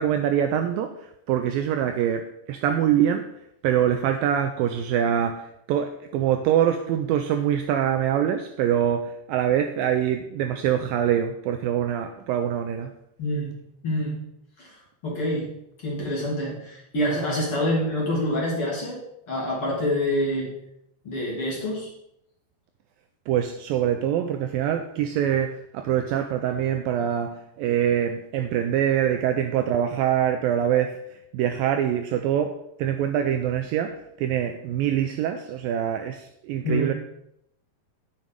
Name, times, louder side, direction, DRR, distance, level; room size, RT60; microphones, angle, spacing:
voice 1, 0.0-3.3 3.6-12.9 23.3-36.9, right 9 dB, 90° right, 2.0 m, -24 dB
voice 2, 13.2-13.6 13.8-14.2 14.6-14.7 15.0-15.5 15.8-20.6 21.0-21.9 36.6-36.9, left 1 dB, 40° left, 2.6 m, -26 dB
9.5 x 7.4 x 5.2 m
omnidirectional pair, 4.7 m